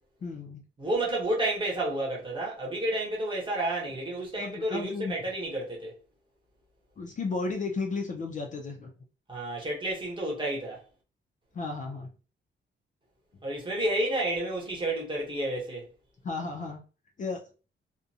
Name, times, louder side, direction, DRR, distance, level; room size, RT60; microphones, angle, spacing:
voice 1, 0.2-0.6 4.4-5.1 7.0-8.9 11.5-12.1 16.2-16.8 17.2-17.4, left 3 dB, 40° left, 0.4 m, -34 dB
voice 2, 0.8-5.9 9.3-10.8 13.4-15.9, right 1 dB, 25° right, 0.9 m, -30 dB
2.5 x 2.1 x 2.7 m
wide cardioid pair, 165°, 21 cm